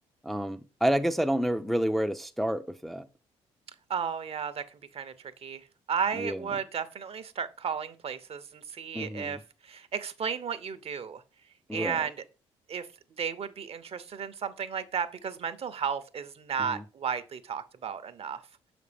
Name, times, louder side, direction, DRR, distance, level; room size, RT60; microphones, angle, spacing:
voice 1, 0.2-3.1 6.1-6.4 8.9-9.4 11.7-12.1 16.6-16.8, equal, ahead, 0.5 m, -29 dB
voice 2, 3.9-9.4 9.6-11.2 11.7-12.1 12.7-12.9 13.2-18.4, right 7 dB, 45° right, 0.8 m, -34 dB
6.6 x 5.0 x 3.4 m
hypercardioid pair, 50°, 14 cm